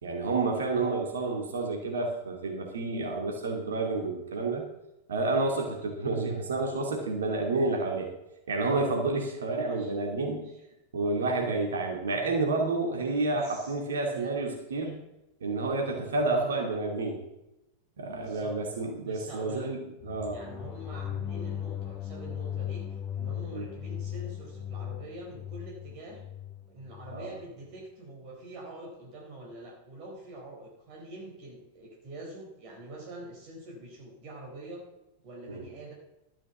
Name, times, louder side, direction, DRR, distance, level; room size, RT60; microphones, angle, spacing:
voice 1, 0.0-4.6 5.1-8.1 8.5-10.5 10.9-15.0 15.4-17.2 18.0-19.8 20.0-20.4 23.5-23.7 27.1-27.3 35.5-35.6, right 3 dB, 65° right, 2 dB, 2.3 m, -29 dB
voice 2, 13.3-13.7 14.1-14.3 16.2-16.5 18.1-18.6 19.0-19.7 20.3-26.2 26.7-34.8 35.2-35.9, right 1 dB, 45° right, -1 dB, 4.1 m, -45 dB
sound 1, 20.0-27.3, left 10 dB, 30° left, 0.6 m, -37 dB
13.0 x 7.6 x 7.0 m, 0.92 s
figure-of-eight pair, 90°, 0 cm